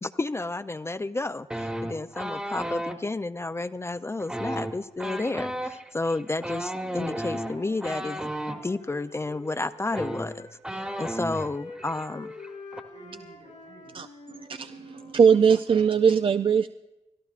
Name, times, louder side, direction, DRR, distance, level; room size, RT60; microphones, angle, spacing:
voice 1, 0.0-8.2 8.5-12.3, left 2 dB, 20° left, 12 dB, 0.4 m, -31 dB
sound 1, 1.5-3.0 4.2-8.6 9.5-9.6 9.9-11.5 11.8-12.1 12.3-12.8, right 1 dB, 10° right, 1.2 m, -33 dB
Wind instrument woodwind instrument, 6.8-10.5 10.8-15.1, left 3 dB, 85° left, 4.1 m, -47 dB
voice 2, 12.5-14.0 14.3-14.4 15.1-16.0, right 2 dB, 75° right, 0 dB, 5.2 m, -53 dB
voice 3, 14.6-16.7, right 6 dB, 45° right, 9 dB, 0.3 m, -20 dB
27.0 x 12.5 x 2.4 m, 0.99 s
cardioid pair, 65°, 12 cm